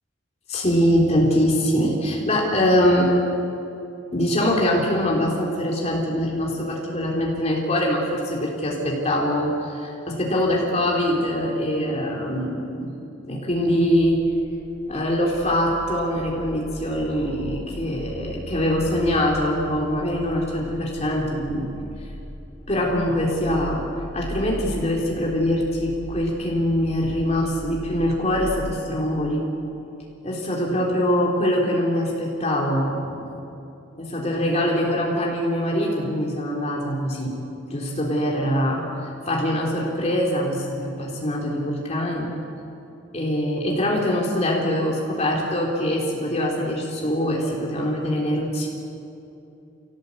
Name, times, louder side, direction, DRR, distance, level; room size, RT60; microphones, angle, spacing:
voice 1, 0.5-3.2 4.1-12.9 13.2-14.3 14.9-21.7 22.0-22.1 22.7-29.5 30.2-33.4 34.0-37.4 37.7-42.3 43.1-48.7, equal, 35° left, -2 dB, 3.5 m, -23 dB
sound 1, 14.0-28.7, equal, 55° left, 6.5 m, -38 dB
27.5 x 17.5 x 8.5 m, 2.8 s
head